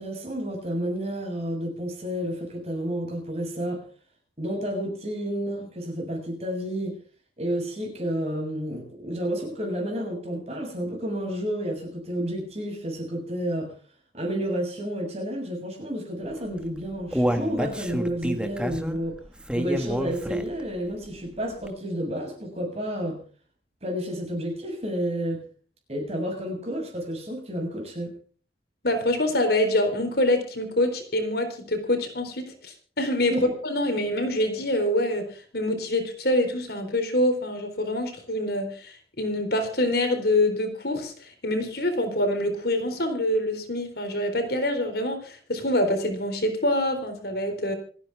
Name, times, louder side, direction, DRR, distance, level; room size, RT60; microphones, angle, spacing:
voice 1, 0.0-3.8 4.4-6.9 7.4-13.7 14.1-19.2 19.5-23.2 23.8-25.4 25.9-28.1 33.3-33.5, equal, 35° right, 2 dB, 7.0 m, -30 dB
Human voice, 16.5-20.7 21.1-21.2 21.6-21.7, equal, 5° right, 1.7 m, -28 dB
voice 2, 28.8-33.4 33.6-47.7, left 1 dB, 55° left, 6 dB, 4.2 m, -25 dB
28.0 x 10.0 x 3.6 m, 0.42 s
head